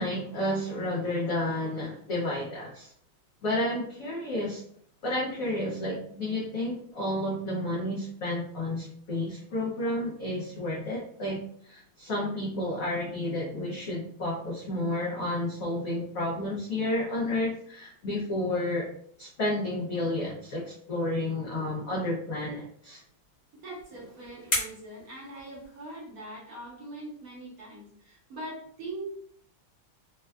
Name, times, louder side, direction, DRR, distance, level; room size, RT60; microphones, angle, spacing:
voice 1, 0.0-2.9 3.4-4.6 5.0-18.9 19.2-23.0, left 1 dB, 75° left, -4 dB, 0.7 m, -31 dB
sound 1, 23.4-26.1, left 1 dB, 35° left, 1.1 m, -36 dB
voice 2, 23.5-29.0, right 1 dB, 60° right, -5 dB, 1.0 m, -42 dB
3.5 x 2.1 x 2.2 m, 0.63 s
omnidirectional pair, 2.1 m